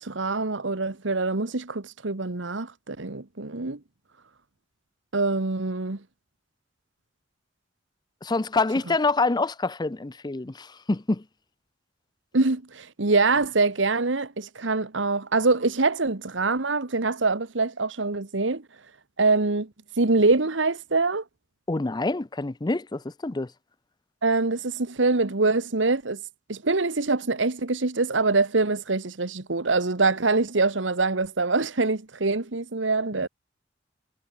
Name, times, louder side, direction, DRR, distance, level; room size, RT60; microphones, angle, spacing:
voice 1, 0.0-3.8 5.1-6.0 12.3-18.6 19.2-19.7 20.0-21.2 24.2-26.2 26.5-33.3, right 3 dB, 85° right, 1.5 m, -24 dB
voice 2, 8.2-11.2 21.7-23.5, left 3 dB, 25° left, 0.6 m, -26 dB
head